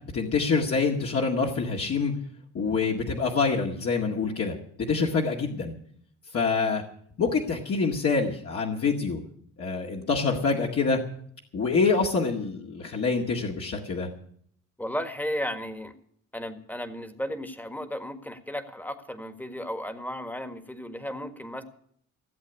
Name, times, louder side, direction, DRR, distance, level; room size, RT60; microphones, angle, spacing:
voice 1, 0.1-2.1 2.5-5.7 6.3-6.8 7.2-9.2 9.6-11.0 11.5-14.1, left 4 dB, 50° left, -1 dB, 2.0 m, -26 dB
voice 2, 14.8-15.9 16.3-21.6, equal, 5° left, 8 dB, 1.6 m, -34 dB
15.5 x 7.7 x 9.5 m, 0.65 s
cardioid pair, 90°, 30 cm